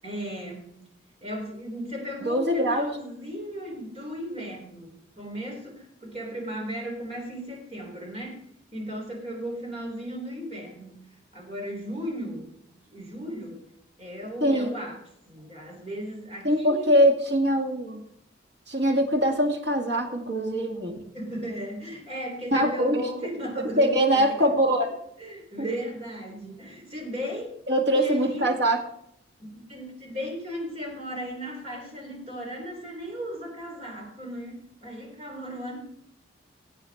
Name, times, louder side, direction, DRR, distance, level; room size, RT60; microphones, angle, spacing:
voice 1, 0.0-0.7 1.2-8.4 8.7-11.1 11.3-12.5 12.9-13.6 14.0-15.0 15.3-17.0 21.1-24.6 25.2-27.5 27.9-28.6 29.4-35.8, equal, 30° right, -1 dB, 3.4 m, -36 dB
voice 2, 2.2-2.9 14.4-14.7 16.4-18.0 18.7-21.1 22.5-23.0 23.8-24.9 27.7-28.8, equal, 65° right, 1 dB, 2.0 m, -23 dB
17.5 x 8.1 x 3.5 m, 0.72 s
head